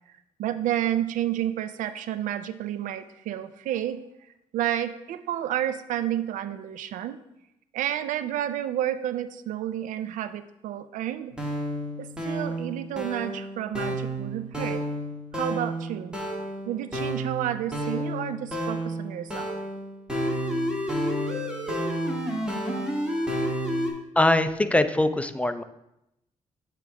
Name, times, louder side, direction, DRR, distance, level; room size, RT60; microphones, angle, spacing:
voice 1, 0.4-4.0 4.5-7.2 7.7-11.3 12.0-14.8 15.3-16.1 16.7-19.6, right 11 dB, 90° right, 12 dB, 0.4 m, -30 dB
sound 1, 11.3-23.9, equal, 5° right, 1.5 m, -30 dB
voice 2, 24.2-25.6, left 1 dB, 10° left, 10 dB, 0.4 m, -22 dB
8.8 x 3.0 x 4.7 m, 0.85 s
cardioid pair, 80°, 13 cm